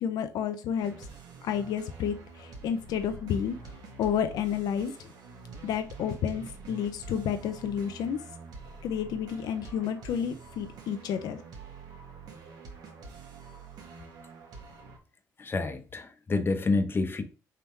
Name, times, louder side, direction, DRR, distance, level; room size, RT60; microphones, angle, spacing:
voice 1, 0.0-0.9 1.4-3.6 4.0-4.9 5.6-8.2 8.8-11.4, left 8 dB, 75° left, 0.5 m, -30 dB
sound 1, 0.8-15.0, right 4 dB, 70° right, 1.1 m, -46 dB
voice 2, 15.4-17.2, left 3 dB, 35° left, 0.8 m, -28 dB
3.6 x 2.8 x 4.4 m
cardioid pair, 75°, 7 cm